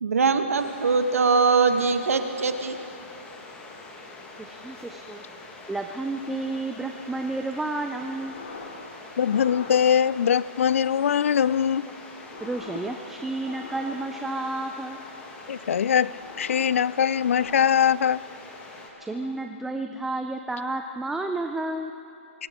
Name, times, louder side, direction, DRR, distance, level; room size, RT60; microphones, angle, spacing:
voice 1, 0.0-2.8, right 4 dB, 85° right, 8 dB, 1.3 m, -22 dB
sound 1, 0.5-18.9, left 2 dB, 15° left, 1.5 m, -44 dB
voice 2, 4.4-5.2 5.7-8.4 12.4-15.0 19.0-21.9, right 2 dB, 5° right, 5 dB, 0.4 m, -31 dB
sound 2, 8.1-8.9 9.2-10.3 10.9-11.5 11.9-14.3 14.8-15.5 15.9-16.9 17.2-18.3 18.8-19.5, left 4 dB, 50° left, 2.6 m, -44 dB
voice 3, 9.2-11.9 15.5-16.1 16.4-18.2, left 8 dB, 65° left, 21 dB, 0.3 m, -22 dB
23.5 x 16.0 x 3.6 m, 2.7 s
hypercardioid pair, 155°, 8 cm